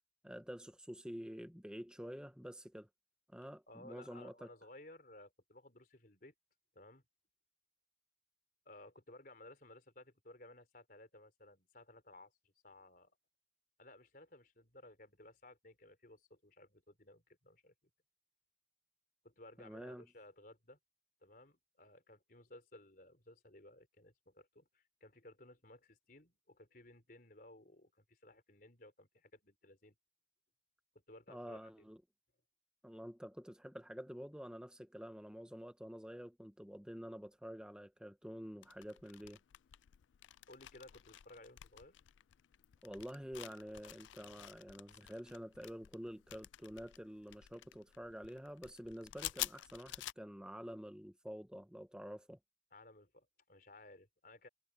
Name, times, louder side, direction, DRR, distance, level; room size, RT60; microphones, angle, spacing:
voice 1, 0.2-2.9 3.3-4.5 19.6-20.1 31.3-32.0 32.8-39.4 42.8-52.4, equal, 5° right, 1.0 m, -48 dB
voice 2, 3.7-6.3 6.7-7.0 8.6-13.1 13.8-17.7 19.2-20.8 21.2-29.9 31.1-31.9 40.5-42.0 52.7-54.5, left 1 dB, 50° left, 4.5 m, -58 dB
sound 1, 38.6-50.1, left 15 dB, 85° left, 0.4 m, -50 dB
head